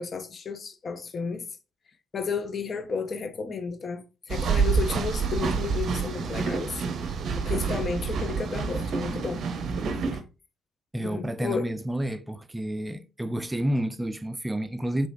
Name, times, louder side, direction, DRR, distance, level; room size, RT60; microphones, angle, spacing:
voice 1, 0.0-1.5 2.1-6.8 7.5-9.5 11.0-11.7, left 5 dB, 45° left, 0.6 m, -32 dB
sound 1, 4.3-10.2, right 5 dB, 55° right, 0.6 m, -28 dB
voice 2, 10.9-15.1, right 1 dB, 15° right, 0.4 m, -30 dB
5.0 x 3.2 x 2.5 m
hypercardioid pair, 50°, 0 cm